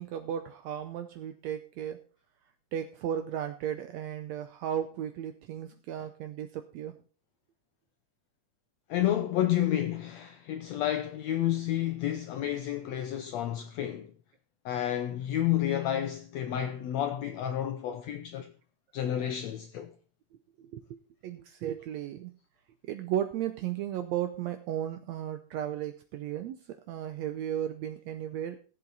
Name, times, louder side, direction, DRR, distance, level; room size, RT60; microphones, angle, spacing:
voice 1, 0.0-2.0 2.7-6.9 11.4-11.5 20.6-21.0 21.2-22.3 22.9-28.6, right 10 dB, 85° right, 1.5 m, -35 dB
voice 2, 8.9-14.1 14.6-18.5 18.9-19.9, left 11 dB, 90° left, 1.5 m, -30 dB
16.5 x 7.7 x 4.0 m
omnidirectional pair, 4.0 m